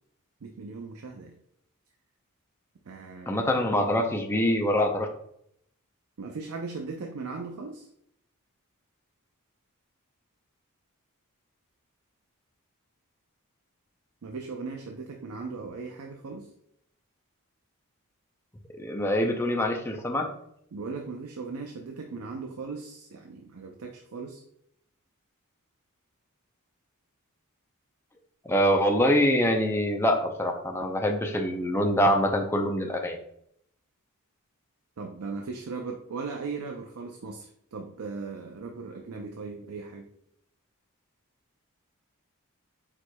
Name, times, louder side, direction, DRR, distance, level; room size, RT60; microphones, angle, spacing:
voice 1, 0.4-1.4 2.9-3.6 6.2-7.9 14.2-16.5 20.7-24.4 35.0-37.5 37.7-40.1, right 4 dB, 70° right, 2 dB, 0.5 m, -38 dB
voice 2, 3.3-5.1 18.7-20.3 28.5-33.2, equal, 10° left, 2 dB, 0.5 m, -24 dB
4.7 x 4.1 x 2.2 m, 0.72 s
head